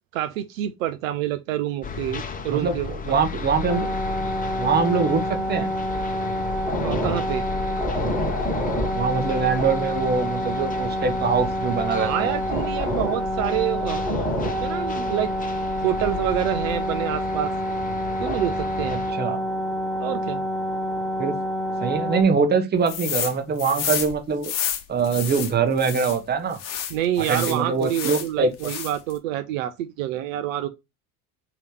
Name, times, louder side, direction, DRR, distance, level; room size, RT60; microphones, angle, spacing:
voice 1, 0.1-3.2 6.8-7.4 11.9-14.0 14.4-15.3 15.8-17.5 18.2-19.0 20.0-20.4 26.9-30.7, right 12 dB, 65° right, 0.5 m, -27 dB
sound 1, 1.8-19.1, left 4 dB, 20° left, 0.9 m, -34 dB
voice 2, 2.5-3.9 4.6-5.7 8.9-12.3 18.9-19.4 21.2-21.4 21.8-24.5 24.9-26.6 27.3-28.5, right 5 dB, 20° right, 0.9 m, -23 dB
sound 2, 3.7-22.2, equal, ahead, 1.7 m, -27 dB
sound 3, 22.9-23.3 23.6-26.2 26.6-28.3 28.6-29.1, left 9 dB, 45° left, 1.0 m, -30 dB
3.1 x 2.9 x 4.6 m
hypercardioid pair, 70°, 44 cm